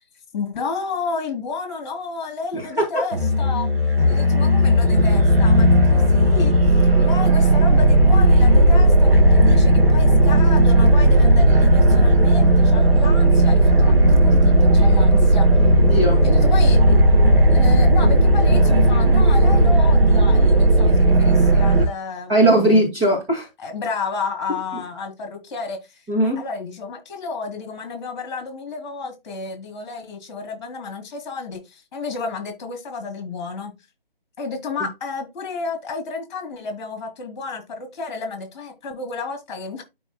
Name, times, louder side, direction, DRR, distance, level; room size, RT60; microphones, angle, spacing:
voice 1, 0.3-3.7 4.1-6.5 7.0-15.5 16.2-17.0 17.5-22.8 23.6-26.0 26.4-33.7 34.4-39.8, left 4 dB, 30° left, 2.9 m, -31 dB
voice 2, 2.5-2.9 15.7-16.2 22.3-23.5 26.1-26.4, right 1 dB, 15° right, 2.1 m, -19 dB
sound 1, 3.1-21.9, right 1 dB, 90° right, 2.8 m, -14 dB
12.5 x 4.7 x 2.2 m
figure-of-eight pair, 155°, 29 cm